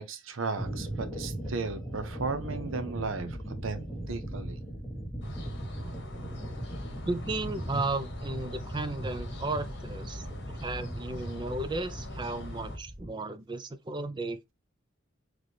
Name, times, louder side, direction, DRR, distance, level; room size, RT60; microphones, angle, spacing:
voice 1, 0.0-4.6, right 4 dB, 75° right, 0.7 m, -35 dB
sound 1, 0.6-13.1, right 1 dB, ahead, 1.1 m, -38 dB
sound 2, 5.2-12.8, left 2 dB, 55° left, 1.2 m, -43 dB
voice 2, 7.0-10.3 10.5-14.5, right 2 dB, 20° right, 0.4 m, -34 dB
4.0 x 3.1 x 3.2 m
head